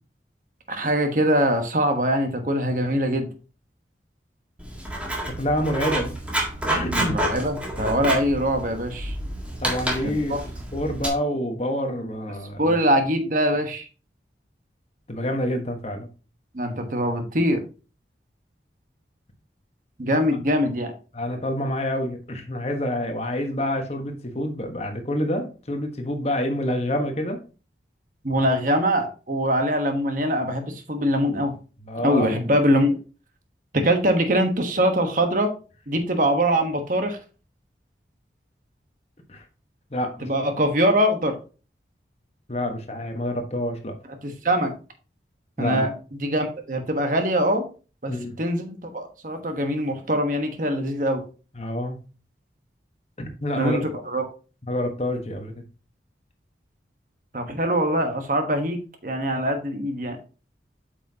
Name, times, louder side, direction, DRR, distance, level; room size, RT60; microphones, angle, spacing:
voice 1, 0.7-3.3 6.9-9.2 10.0-10.4 12.6-13.9 16.5-17.6 20.0-20.9 28.2-31.5 32.0-33.0 33.7-35.5 35.9-37.2 40.2-41.4 44.2-44.7 45.6-45.9 46.2-47.6 48.0-51.2 53.5-54.2 57.3-60.2, equal, 45° right, 6 dB, 1.3 m, -23 dB
Writing, 4.6-11.1, right 1 dB, 10° right, 1.7 m, -29 dB
voice 2, 5.2-6.1 6.7-7.2 9.6-10.3 10.7-12.7 15.1-16.1 21.1-27.4 31.8-32.3 39.3-39.4 39.9-40.3 42.5-44.0 45.6-45.9 48.1-48.4 51.6-52.0 53.2-53.8 54.7-55.6, left 1 dB, 35° left, 4 dB, 1.3 m, -27 dB
8.1 x 6.1 x 2.8 m, 0.33 s
head